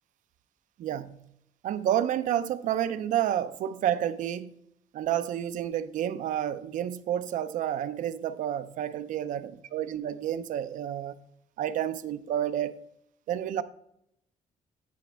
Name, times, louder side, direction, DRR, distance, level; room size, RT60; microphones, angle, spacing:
voice 1, 0.8-1.2 1.6-4.5 4.9-9.4 9.7-11.2 11.6-12.8 13.3-13.6, right 10 dB, 70° right, 0.4 m, -30 dB
9.3 x 5.0 x 3.3 m
cardioid pair, 180°, 14 cm